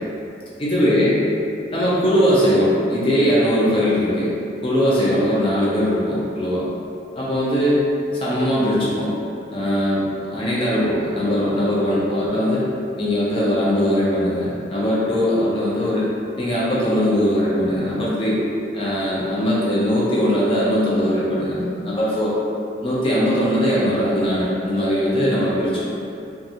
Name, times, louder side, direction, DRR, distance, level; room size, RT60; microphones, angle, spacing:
voice 1, 0.6-1.2 1.7-4.3 4.6-6.6 7.2-7.8 8.2-9.1 9.5-12.6 13.0-16.1 16.4-18.4 18.7-22.3 22.8-25.8, equal, 30° left, -8 dB, 0.5 m, -20 dB
2.5 x 2.3 x 2.7 m, 2.6 s
head